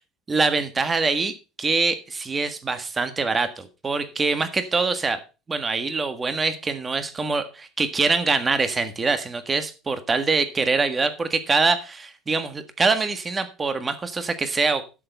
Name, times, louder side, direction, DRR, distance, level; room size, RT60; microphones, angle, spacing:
voice 1, 0.3-5.2 5.5-14.8, right 4 dB, 20° right, 10 dB, 1.6 m, -24 dB
12.5 x 6.9 x 5.4 m, 0.31 s
cardioid pair, 150°, 0 cm